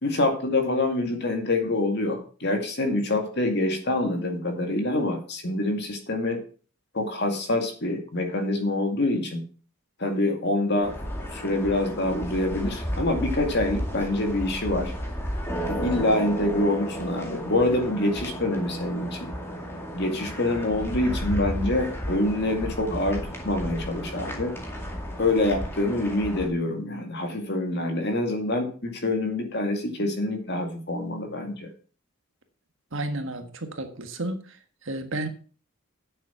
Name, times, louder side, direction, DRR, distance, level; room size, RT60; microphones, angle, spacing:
voice 1, 0.0-6.4 6.9-9.4 10.0-10.9 11.3-14.9 15.7-19.3 19.9-24.5 25.2-31.7, left 2 dB, 50° left, 2.2 m, -26 dB
sound 1, 10.8-26.5, equal, 10° left, 2.2 m, -33 dB
voice 2, 32.9-34.4 34.8-35.3, right 1 dB, 60° right, 1.6 m, -31 dB
9.6 x 7.3 x 5.7 m
head